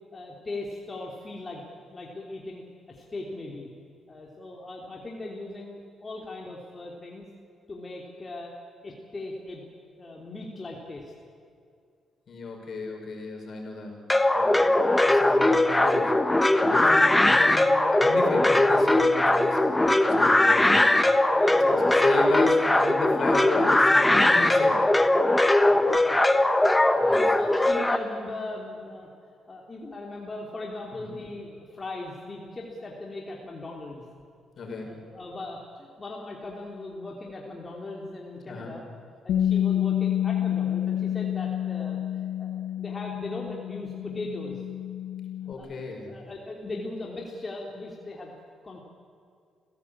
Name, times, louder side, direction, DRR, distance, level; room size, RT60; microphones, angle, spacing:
voice 1, 0.1-1.6 1.9-3.7 4.1-7.3 7.7-8.5 8.8-9.6 10.0-11.1 17.0-17.1 21.3-21.8 25.6-26.2 26.9-27.1 27.3-29.1 29.5-34.0 34.8-38.8 39.2-42.5 42.8-44.6 45.6-45.7 46.0-48.3 48.6-48.8, left 2 dB, 30° left, -2 dB, 3.3 m, -38 dB
voice 2, 12.3-14.1 14.3-16.2 16.5-21.0 21.6-24.9 27.0-27.4 31.0-31.2 34.6-35.0 38.5-38.7 45.5-46.1, left 3 dB, 55° left, 2 dB, 6.0 m, -34 dB
sound 1, 14.1-28.0, left 1 dB, 10° left, 1.3 m, -20 dB
Bass guitar, 39.3-45.5, left 11 dB, 85° left, 1.4 m, -28 dB
28.5 x 16.5 x 8.7 m, 2.4 s
cardioid pair, 90°, 0 cm